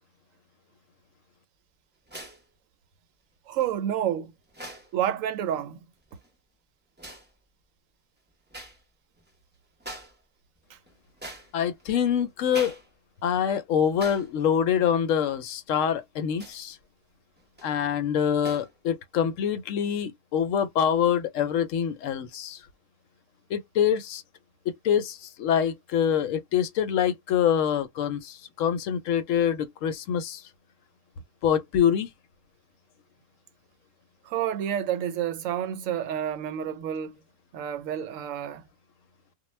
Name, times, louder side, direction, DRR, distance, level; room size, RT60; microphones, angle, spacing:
sound 1, 2.1-2.4 3.6-3.7 4.5-4.9 6.0-6.3 7.0-7.3 8.5-8.8 9.2-9.3 9.8-10.2 10.6-11.8 12.5-12.9 13.2-13.3 13.9-14.3 14.7-14.8 16.3-16.7 17.4-17.7 18.4-18.7, right 1 dB, 10° right, 0.5 m, -42 dB
voice 1, 3.5-4.3 4.9-5.8 10.7-10.8 34.2-37.2 37.5-38.6, right 10 dB, 80° right, 0.9 m, -29 dB
voice 2, 11.5-12.8 13.2-16.8 17.6-22.6 23.5-24.2 24.7-30.4 31.4-32.1, left 8 dB, 75° left, 0.9 m, -25 dB
2.2 x 2.1 x 3.1 m
omnidirectional pair, 1.4 m